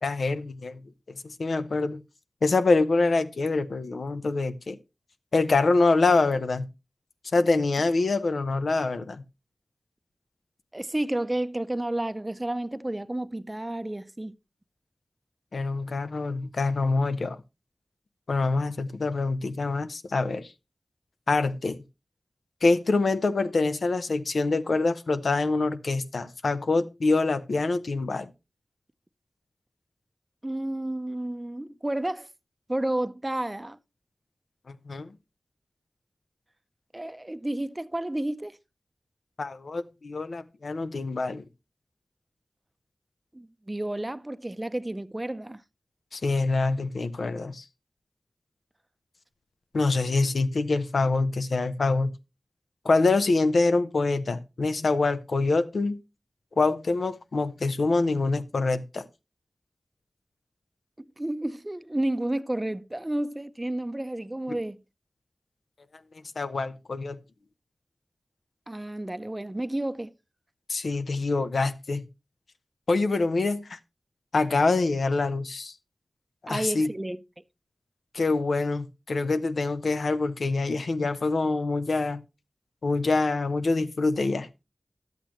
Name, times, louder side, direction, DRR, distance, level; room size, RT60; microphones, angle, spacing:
voice 1, 0.0-0.8 1.2-2.0 2.4-4.8 5.3-6.7 7.3-9.2 15.5-17.4 18.3-20.5 21.3-21.8 22.6-28.3 34.7-35.1 39.4-41.4 46.1-47.7 49.7-52.1 52.8-56.0 56.6-59.0 64.5-64.6 66.4-67.2 70.7-72.1 72.9-73.8 74.3-75.8 76.5-76.9 78.1-82.2 82.8-84.5, left 3 dB, 85° left, 0.7 m, -25 dB
voice 2, 10.7-14.4 30.4-32.3 32.7-33.8 36.9-38.6 43.3-45.6 61.2-64.8 68.7-70.1 76.5-77.2, right 1 dB, 25° right, 0.5 m, -31 dB
11.5 x 8.2 x 3.0 m
wide cardioid pair, 50°, 0 cm